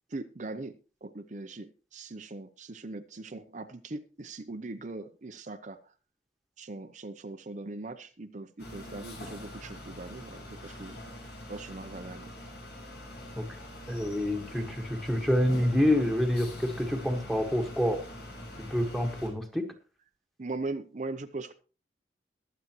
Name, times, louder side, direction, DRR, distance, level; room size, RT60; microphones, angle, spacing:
voice 1, 0.1-0.8 1.0-5.9 6.6-11.0 11.5-12.3 20.4-21.5, right 2 dB, 45° right, 7 dB, 0.7 m, -40 dB
sound 1, 8.6-19.3, left 1 dB, 70° left, 6.5 m, -44 dB
voice 2, 13.9-18.0 18.7-19.7, left 1 dB, ahead, 4 dB, 1.6 m, -27 dB
22.0 x 7.9 x 3.0 m, 0.35 s
head